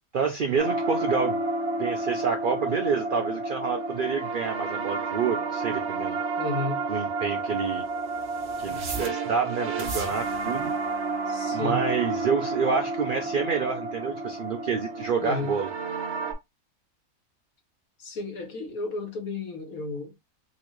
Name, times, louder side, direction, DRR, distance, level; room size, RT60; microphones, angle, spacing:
voice 1, 0.1-1.4 1.8-6.2 6.9-7.9 8.6-10.7 11.5-15.7, right 5 dB, 80° right, 0.4 m, -28 dB
sound 1, 0.6-16.3, right 3 dB, 50° right, 1.0 m, -30 dB
voice 2, 6.4-6.8 11.3-11.8 15.2-15.5 18.0-20.2, left 3 dB, 70° left, 1.5 m, -32 dB
3.9 x 2.5 x 3.0 m
omnidirectional pair, 1.6 m